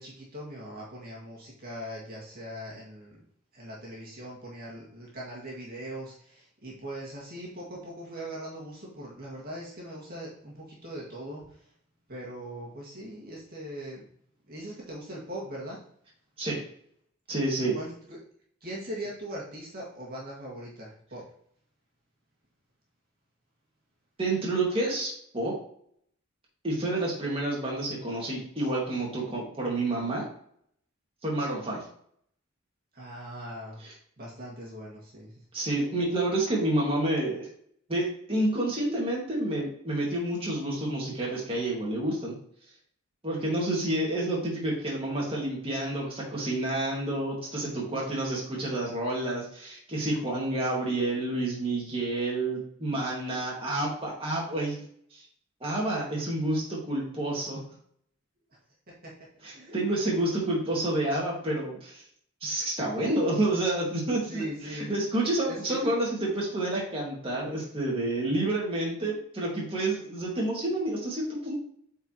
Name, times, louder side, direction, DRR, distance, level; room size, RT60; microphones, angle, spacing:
voice 1, 0.0-3.2 3.5-11.7 12.1-14.0 14.5-15.8 17.7-18.2 18.6-21.2 32.9-33.8 34.2-35.4 58.9-59.1 59.5-59.8 64.3-64.9 65.5-65.9, right 1 dB, 45° right, -4 dB, 2.0 m, -40 dB
voice 2, 17.3-17.7 24.2-25.5 26.6-30.3 31.2-31.8 33.8-33.9 35.5-37.5 37.9-42.3 43.2-54.8 55.1-55.2 55.6-57.6 59.4-62.0 62.4-64.4 64.7-71.6, right 1 dB, 25° right, -4 dB, 2.1 m, -29 dB
8.2 x 4.7 x 3.0 m, 0.63 s
head